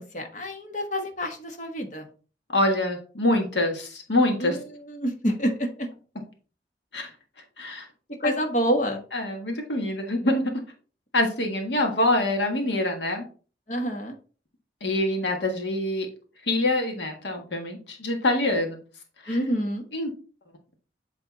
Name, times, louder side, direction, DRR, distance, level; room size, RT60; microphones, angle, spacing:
voice 1, 0.0-2.1 4.4-5.9 8.2-9.0 13.7-14.1 19.3-19.8, equal, 45° left, 4 dB, 1.3 m, -28 dB
voice 2, 2.5-4.6 6.9-7.1 7.6-7.9 8.2-8.3 9.1-10.5 11.1-13.3 14.8-16.1 16.4-18.8 19.2-19.4 19.9-20.1, left 1 dB, 85° left, 3 dB, 1.6 m, -25 dB
8.1 x 3.5 x 4.1 m, 0.37 s
head